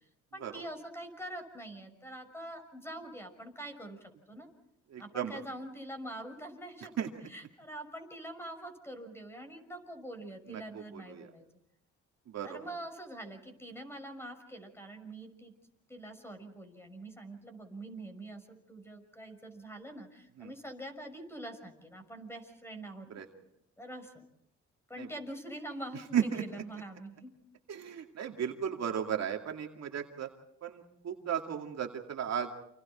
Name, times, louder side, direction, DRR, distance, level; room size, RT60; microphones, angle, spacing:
voice 1, 0.3-4.5 5.0-11.4 12.4-15.5 15.9-23.1 23.8-24.3 24.9-27.4, right 1 dB, 10° left, 6 dB, 6.1 m, -45 dB
voice 2, 4.9-5.4 7.0-7.1 10.5-11.3 12.3-12.6 20.4-20.5 23.1-23.2 25.0-25.1 26.1-26.4 27.7-30.3 30.6-32.5, right 8 dB, 60° right, 3 dB, 2.4 m, -35 dB
29.5 x 27.5 x 4.4 m, 0.73 s
cardioid pair, 90°, 30 cm